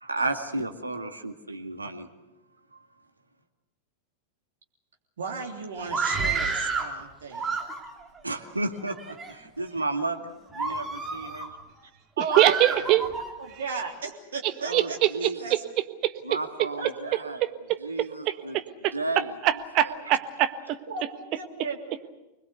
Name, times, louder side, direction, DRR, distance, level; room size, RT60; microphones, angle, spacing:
voice 1, 0.0-2.1 2.7-2.9 8.2-11.5 14.6-15.5 16.2-17.5 17.8-18.6 18.9-19.4 19.8-20.1, right 2 dB, 80° right, 5 dB, 2.1 m, -33 dB
voice 2, 5.2-7.5 12.2-12.8 13.4-15.0 15.4-15.6 16.8-17.2 20.1-20.2 20.9-22.2, right 4 dB, 65° right, 2 dB, 3.3 m, -35 dB
Screaming, 5.8-6.9 7.3-8.1 8.7-9.3 9.8-10.0 10.5-11.5 12.3-13.3, right 4 dB, 20° right, 2.9 m, -30 dB
voice 3, 12.4-13.0 14.7-15.6 16.0-16.1 17.4-17.8 18.3-18.4 18.8-18.9 19.4-20.8, right 14 dB, 40° right, 10 dB, 1.4 m, -23 dB
25.5 x 21.0 x 8.1 m, 0.99 s
figure-of-eight pair, 90°, 0 cm